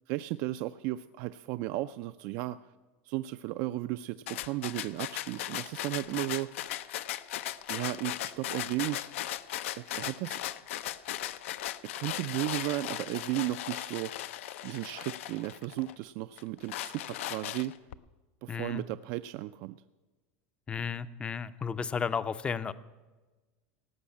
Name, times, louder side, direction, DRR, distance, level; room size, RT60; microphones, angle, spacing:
voice 1, 0.1-2.6 3.0-6.5 7.7-9.1 9.7-10.4 11.9-14.1 14.6-17.7 18.4-19.8, right 17 dB, 50° right, 11 dB, 0.3 m, -34 dB
sound 1, 4.3-15.9 16.4-17.9, left 13 dB, 85° left, 0.5 m, -37 dB
voice 2, 18.5-18.8 20.7-22.7, left 6 dB, 15° left, 15 dB, 0.4 m, -33 dB
17.5 x 6.2 x 8.5 m, 1.2 s
supercardioid pair, 150°, 7 cm